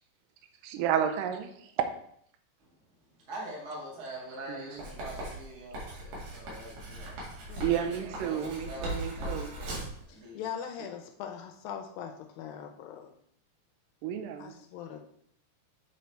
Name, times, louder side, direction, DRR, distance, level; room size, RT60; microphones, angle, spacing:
voice 1, 0.6-1.5 4.5-4.8 7.2-7.3 7.6-9.5 14.0-14.6, right 9 dB, 85° right, 6 dB, 1.9 m, -31 dB
voice 2, 3.3-7.2 7.8-9.8 10.1-10.5, right 1 dB, 30° right, -4 dB, 1.5 m, -44 dB
Writing, 4.8-10.0, right 1 dB, 65° right, 3.9 m, -39 dB
voice 3, 10.1-13.1 14.4-15.0, left 8 dB, 80° left, 4 dB, 2.2 m, -41 dB
8.5 x 3.9 x 4.4 m, 0.67 s
omnidirectional pair, 4.7 m